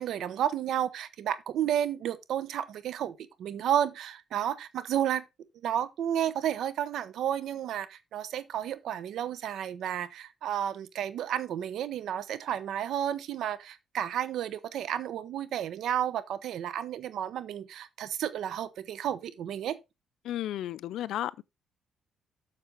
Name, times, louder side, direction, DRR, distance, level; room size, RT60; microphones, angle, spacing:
voice 1, 0.0-5.2 5.6-19.8, right 10 dB, 75° right, 0.9 m, -32 dB
voice 2, 20.2-21.4, left 12 dB, 80° left, 0.3 m, -33 dB
7.5 x 6.6 x 3.9 m
cardioid pair, 90°, 0 cm